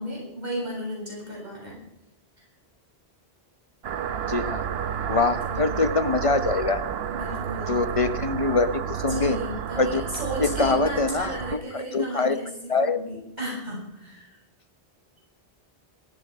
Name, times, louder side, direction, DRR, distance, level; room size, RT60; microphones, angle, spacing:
voice 1, 0.0-1.8 2.4-2.5 5.4-5.8 7.1-7.9 9.1-14.4, right 1 dB, 40° right, -4 dB, 7.8 m, -35 dB
sound 1, 3.8-11.6, right 8 dB, 65° right, 1.0 m, -31 dB
voice 2, 4.3-4.6 5.1-6.8 7.7-9.4 9.8-10.0 10.4-12.4 12.7-13.0, left 3 dB, 35° left, 11 dB, 0.9 m, -24 dB
18.5 x 15.5 x 5.0 m, 0.87 s
omnidirectional pair, 1.1 m